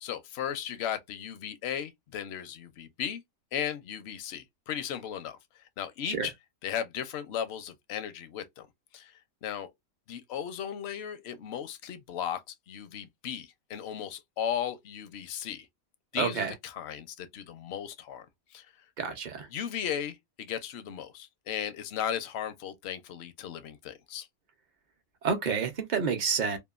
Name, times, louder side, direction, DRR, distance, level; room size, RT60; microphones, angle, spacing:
voice 1, 0.0-3.2 3.5-5.4 5.8-6.3 6.6-8.7 8.9-9.1 9.4-9.7 10.1-12.4 12.7-15.7 16.1-18.3 18.5-18.7 19.5-24.3, left 9 dB, 65° left, 0.6 m, -36 dB
voice 2, 16.2-16.5 19.0-19.5 25.2-26.6, right 6 dB, 55° right, 0.5 m, -29 dB
2.8 x 2.2 x 2.3 m
omnidirectional pair, 1.5 m